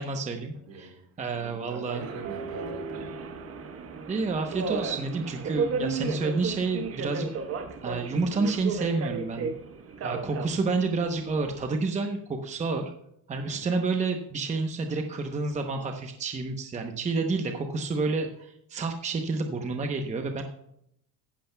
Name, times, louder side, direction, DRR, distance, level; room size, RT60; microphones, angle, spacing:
voice 1, 0.0-2.0 4.1-7.3 7.8-9.5 10.0-12.9 13.3-20.4, right 3 dB, 20° right, 4 dB, 0.8 m, -29 dB
voice 2, 0.5-0.9 1.3-3.1 13.4-13.7, right 4 dB, 65° right, 2 dB, 4.2 m, -43 dB
Subway metro underground, 2.0-11.7, right 5 dB, 35° right, 1.1 m, -34 dB
15.0 x 11.5 x 2.3 m, 0.76 s
cardioid pair, 140°, 39 cm